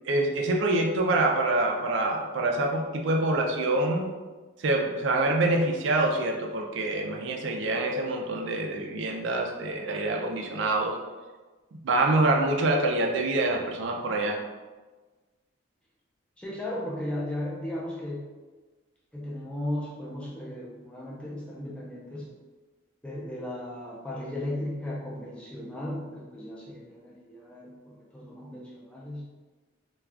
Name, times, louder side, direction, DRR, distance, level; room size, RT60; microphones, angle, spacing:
voice 1, 0.1-4.1 4.6-11.0 11.8-14.4, right 2 dB, 65° right, 2 dB, 0.4 m, -26 dB
voice 2, 16.4-18.3 19.1-22.3 23.0-29.3, left 1 dB, 5° left, -5 dB, 0.5 m, -36 dB
2.3 x 2.3 x 3.3 m, 1.3 s
head